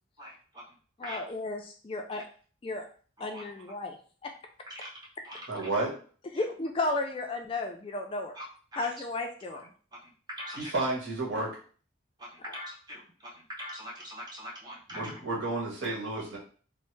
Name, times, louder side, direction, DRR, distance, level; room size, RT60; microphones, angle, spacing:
voice 1, 0.2-0.7 1.0-1.3 2.1-2.2 3.2-3.5 4.7-4.9 5.2-5.7 8.3-8.4 8.7-8.9 9.5-9.6 9.9-10.7 12.2-15.2, equal, 20° right, -4 dB, 0.8 m, -43 dB
voice 2, 1.0-2.2 2.6-2.9 3.2-4.0 4.2-4.3 6.3-8.3 8.8-9.6 12.4-12.5 15.1-15.2, left 2 dB, 25° left, 4 dB, 0.3 m, -33 dB
voice 3, 5.5-5.9 10.6-11.5 14.9-16.4, right 2 dB, 80° right, -3 dB, 1.2 m, -31 dB
3.1 x 2.0 x 3.1 m, 0.41 s
head